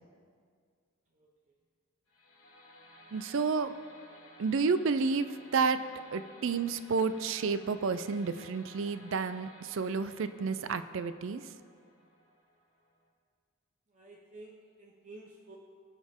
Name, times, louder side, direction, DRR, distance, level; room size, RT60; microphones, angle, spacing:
sound 1, 2.1-13.1, left 1 dB, 85° left, 1.9 m, -56 dB
voice 1, 3.1-3.7 4.4-5.8 6.1-11.5, right 5 dB, 65° right, 12 dB, 0.4 m, -30 dB
voice 2, 13.9-15.6, right 2 dB, 35° right, -1 dB, 0.8 m, -51 dB
18.0 x 6.4 x 3.6 m, 2.1 s
head